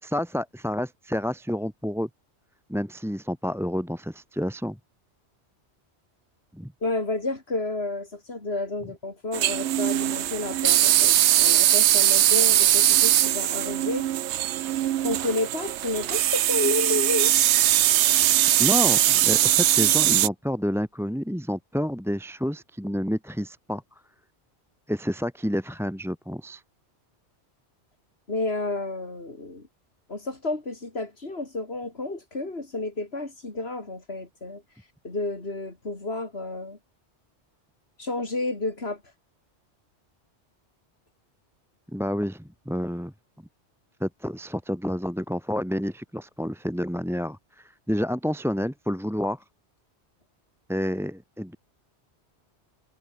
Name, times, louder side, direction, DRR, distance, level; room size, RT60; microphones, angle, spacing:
voice 1, 0.0-2.1 2.7-4.8 6.5-6.7 18.6-23.8 24.9-26.6 41.9-43.1 44.0-49.4 50.7-51.6, equal, ahead, 1.9 m, -29 dB
voice 2, 6.8-14.1 15.0-17.3 28.3-29.7 30.1-34.6 35.0-36.8 38.0-39.0, left 2 dB, 60° left, 4.2 m, -31 dB
sound 1, 9.3-20.3, right 12 dB, 75° right, 0.9 m, -21 dB
omnidirectional pair, 1.2 m